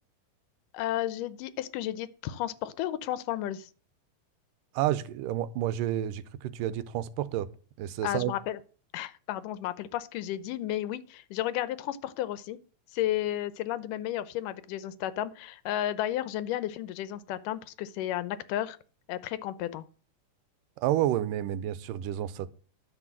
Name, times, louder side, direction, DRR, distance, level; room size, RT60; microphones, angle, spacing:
voice 1, 0.7-3.7 8.0-8.6 8.9-12.6 12.9-18.8 19.1-19.8, left 13 dB, 85° left, 2.3 m, -33 dB
voice 2, 4.7-7.5 7.8-8.3 20.8-22.5, right 12 dB, 90° right, 2.4 m, -30 dB
11.5 x 6.1 x 7.4 m
omnidirectional pair, 3.7 m